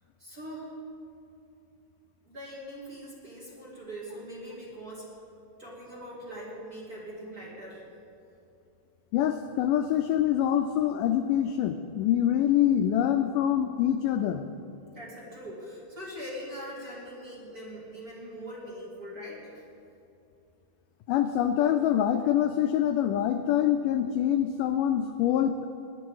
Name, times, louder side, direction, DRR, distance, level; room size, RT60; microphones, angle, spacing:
voice 1, 0.2-0.7 2.3-5.1 5.6-7.8 14.9-19.5, equal, 30° right, -5 dB, 1.9 m, -42 dB
voice 2, 9.1-14.4 21.1-25.6, left 10 dB, 85° left, 8 dB, 1.8 m, -25 dB
19.5 x 9.8 x 4.8 m, 2.7 s
omnidirectional pair, 4.3 m